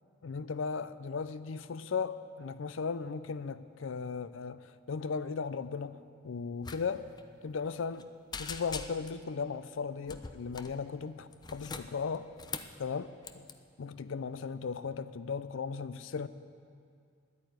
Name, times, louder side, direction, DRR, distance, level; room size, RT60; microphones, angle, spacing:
voice 1, 0.2-7.1 7.4-8.1 8.4-12.3 12.8-13.1 13.3-13.5 13.8-16.3, left 5 dB, 85° left, 14 dB, 0.5 m, -36 dB
sound 1, 6.6-6.8 7.1-7.2 7.6-8.0 8.3-9.2 10.1-10.8 11.3-12.8 13.2-13.5, left 5 dB, 20° left, 0.4 m, -42 dB
10.5 x 8.9 x 9.4 m, 2.3 s
head